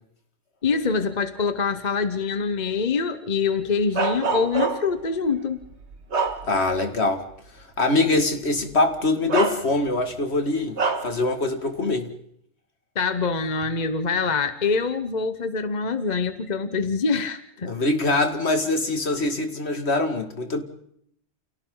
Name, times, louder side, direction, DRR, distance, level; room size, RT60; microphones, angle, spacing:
voice 1, 0.6-5.6 12.9-17.7, left 5 dB, 40° left, 10 dB, 1.1 m, -25 dB
Bark, 3.9-5.0 5.6-6.9 7.3-7.5 8.6-8.7 9.3-10.1 10.8-11.2, right 4 dB, 65° right, 1.9 m, -26 dB
voice 2, 6.4-7.2 7.8-10.8 11.0-12.1 17.6-20.6, left 2 dB, 60° left, 6 dB, 2.4 m, -23 dB
29.5 x 27.5 x 3.9 m, 0.69 s
omnidirectional pair, 1.2 m